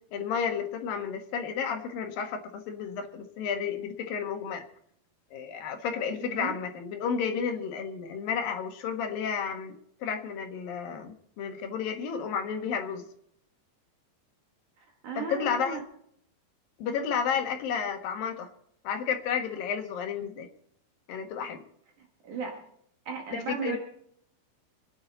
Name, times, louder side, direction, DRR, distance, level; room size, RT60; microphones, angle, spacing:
voice 1, 0.1-4.6 5.3-13.0 15.2-15.8 16.8-18.5 18.8-20.5 21.1-21.6 23.5-23.8, left 7 dB, 70° left, 5 dB, 3.2 m, -32 dB
voice 2, 6.2-6.6 14.8-15.8 22.2-22.6 23.1-23.8, right 5 dB, 60° right, 1 dB, 3.0 m, -35 dB
26.0 x 9.8 x 4.1 m, 0.69 s
omnidirectional pair, 4.4 m